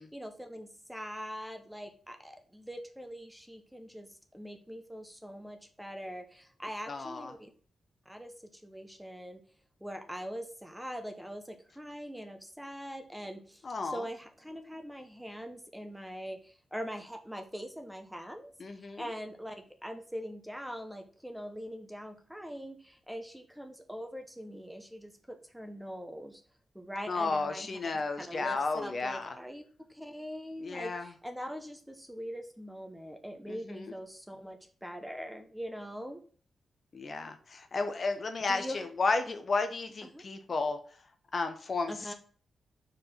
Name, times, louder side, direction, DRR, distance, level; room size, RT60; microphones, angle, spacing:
voice 1, 0.0-7.5 8.1-9.4 9.8-26.4 26.7-27.8 28.2-29.6 29.9-36.2 38.5-38.8 39.3-39.4 40.1-40.2 41.9-42.1, equal, 5° right, 5 dB, 0.9 m, -42 dB
voice 2, 6.9-7.3 13.6-14.0 18.6-19.0 27.1-29.3 30.6-31.1 33.5-33.9 36.9-40.8 41.3-42.1, left 3 dB, 40° left, 7 dB, 0.9 m, -33 dB
4.9 x 4.6 x 5.6 m, 0.43 s
wide cardioid pair, 140°, 0 cm